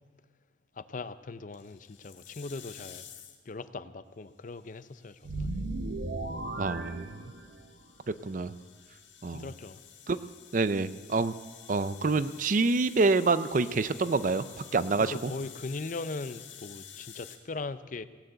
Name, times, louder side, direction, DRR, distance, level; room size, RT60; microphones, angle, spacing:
voice 1, 0.8-3.0 3.5-5.5 9.3-9.8 15.1-18.0, left 3 dB, 45° left, 14 dB, 0.5 m, -39 dB
sound 1, 1.5-3.5 4.6-17.4, left 9 dB, 85° left, 1.5 m, -51 dB
sound 2, 5.2-7.8, right 2 dB, 60° right, 1.0 m, -36 dB
voice 2, 6.6-7.1 8.1-8.5 9.2-9.5 10.1-10.2 10.5-11.3 11.7-15.3, right 3 dB, 45° right, 14 dB, 0.5 m, -27 dB
18.0 x 9.2 x 7.9 m, 1.4 s
head